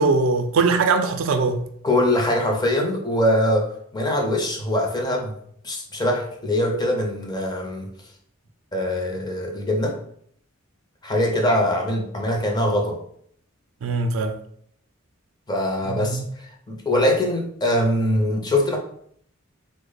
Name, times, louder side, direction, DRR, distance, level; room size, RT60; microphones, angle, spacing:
voice 1, 0.0-1.6 13.8-14.3 15.9-16.2, right 4 dB, 70° right, 0.4 m, -21 dB
voice 2, 1.8-7.9 8.7-10.0 11.0-13.0 15.5-18.8, left 1 dB, 20° left, 0.5 m, -23 dB
3.3 x 2.0 x 3.8 m
head